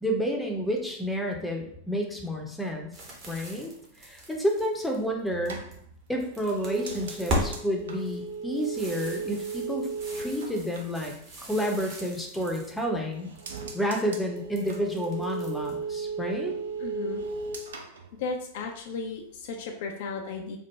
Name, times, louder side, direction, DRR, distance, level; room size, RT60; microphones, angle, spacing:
voice 1, 0.0-2.9 3.3-3.7 4.0-5.6 6.1-9.9 10.1-11.1 11.4-13.3 13.7-16.5, equal, 5° left, 1 dB, 0.6 m, -30 dB
sound 1, 2.9-5.7 6.1-7.5 7.9-12.8 13.1-13.7 14.4-15.7, equal, 35° right, 0.9 m, -38 dB
sound 2, 5.0-11.8 12.1-12.8 13.1-18.8 19.1-19.6, right 4 dB, 65° right, 0.4 m, -36 dB
voice 2, 16.8-17.2 18.2-20.6, left 4 dB, 50° left, 3 dB, 0.4 m, -35 dB
3.3 x 2.1 x 3.0 m, 0.69 s
figure-of-eight pair, 90°, 0 cm